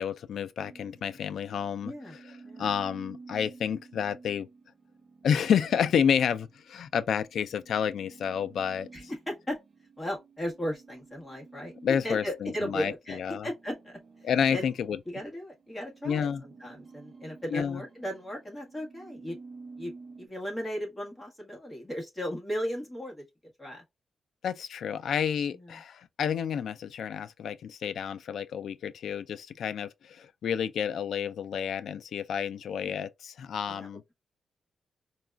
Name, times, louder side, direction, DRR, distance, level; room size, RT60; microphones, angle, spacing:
voice 1, 0.0-1.9 2.6-4.5 5.2-8.9 11.8-13.5 14.2-15.0 16.0-16.4 17.5-17.8 24.4-34.0, left 8 dB, 70° left, 0.3 m, -30 dB
sound 1, 0.6-15.1 15.5-20.3, right 4 dB, 30° right, 0.6 m, -52 dB
voice 2, 1.8-2.1 2.4-2.7 8.9-9.6 10.0-11.7 12.0-14.0 14.5-14.7 15.1-19.4 19.8-19.9 20.2-23.2 23.6-23.8 25.5-25.7 32.7-33.0 33.7-34.1, equal, 15° left, 1.5 m, -36 dB
4.0 x 2.3 x 2.3 m
wide cardioid pair, 155°, 0 cm